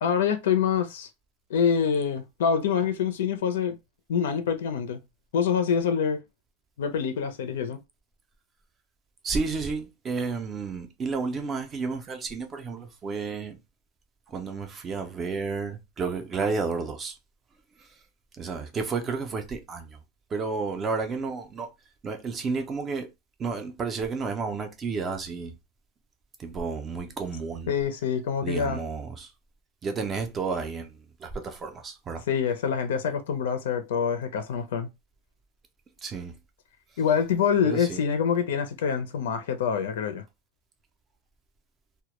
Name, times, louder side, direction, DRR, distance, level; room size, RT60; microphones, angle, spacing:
voice 1, 0.0-1.1 1.5-3.8 4.1-5.0 5.3-6.2 6.8-7.8 27.7-28.8 32.3-34.9 37.0-40.2, left 7 dB, 85° left, 0.5 m, -26 dB
voice 2, 9.2-13.5 14.3-17.2 18.4-19.9 20.3-21.7 22.0-23.1 23.4-25.5 26.4-27.7 28.4-29.3 29.8-30.9 31.2-32.2 36.0-36.3 37.6-38.0, right 4 dB, 15° right, 0.4 m, -31 dB
2.1 x 2.1 x 2.8 m
supercardioid pair, 180°, 0 cm